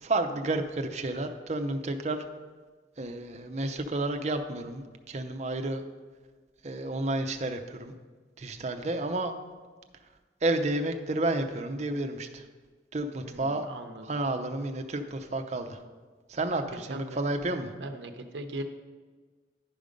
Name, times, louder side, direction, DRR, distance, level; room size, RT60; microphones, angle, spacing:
voice 1, 0.0-2.2 3.0-5.8 6.6-7.9 8.4-9.3 10.4-12.4 12.9-13.7 14.0-15.8 16.3-17.7, right 2 dB, 40° right, 7 dB, 0.6 m, -31 dB
voice 2, 13.2-14.1 16.7-17.2 17.8-18.6, right 1 dB, 90° right, 5 dB, 0.7 m, -39 dB
10.5 x 5.2 x 5.1 m, 1.4 s
head